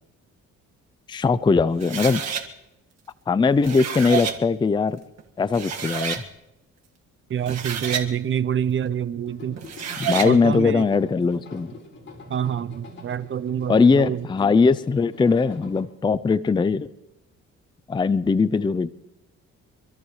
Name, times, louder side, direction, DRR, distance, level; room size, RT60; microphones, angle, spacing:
voice 1, 1.1-2.2 3.3-5.0 5.4-6.2 10.0-11.7 13.7-16.9 17.9-18.9, left 4 dB, 15° left, 0.5 m, -20 dB
sound 1, 1.8-2.4 3.4-4.4 5.2-5.3 5.5-6.2 7.3-8.1 9.6-10.3, right 7 dB, 60° right, 1.8 m, -29 dB
voice 2, 7.3-9.6 10.2-10.9 12.3-14.3, right 9 dB, 40° right, 0.7 m, -26 dB
sound 2, 9.3-15.8, left 3 dB, 40° left, 5.2 m, -45 dB
26.0 x 13.5 x 3.2 m
cardioid pair, 90°, 30 cm